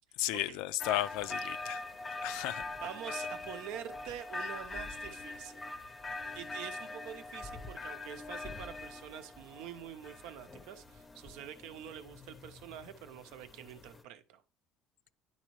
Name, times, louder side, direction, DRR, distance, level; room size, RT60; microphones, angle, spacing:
voice 1, 0.2-1.8 2.2-2.6, left 15 dB, 90° left, 0.3 m, -34 dB
sound 1, 0.8-14.0, left 2 dB, 20° left, 0.6 m, -43 dB
voice 2, 2.7-5.6 6.3-14.4, right 10 dB, 85° right, 0.8 m, -46 dB
10.0 x 4.1 x 3.1 m
cardioid pair, 155°, 0 cm